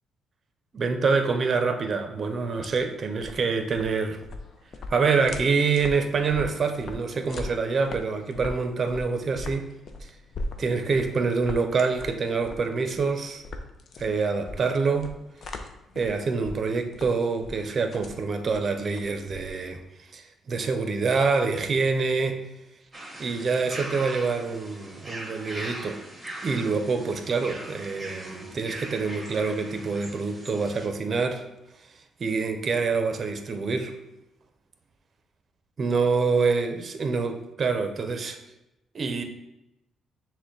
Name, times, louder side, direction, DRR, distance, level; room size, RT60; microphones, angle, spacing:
voice 1, 0.7-4.2 4.9-9.7 10.0-10.1 10.6-13.4 14.0-15.2 15.9-19.8 20.1-22.4 23.2-26.0 26.4-31.4 32.2-34.0 35.8-38.4 38.9-39.2, right 4 dB, 45° right, 6 dB, 0.6 m, -26 dB
sound 1, 2.4-19.8, left 2 dB, 55° left, 0.5 m, -40 dB
sound 2, 22.9-30.9, right 1 dB, 15° right, 1.1 m, -40 dB
6.1 x 2.1 x 3.9 m, 0.93 s
cardioid pair, 90°, 0 cm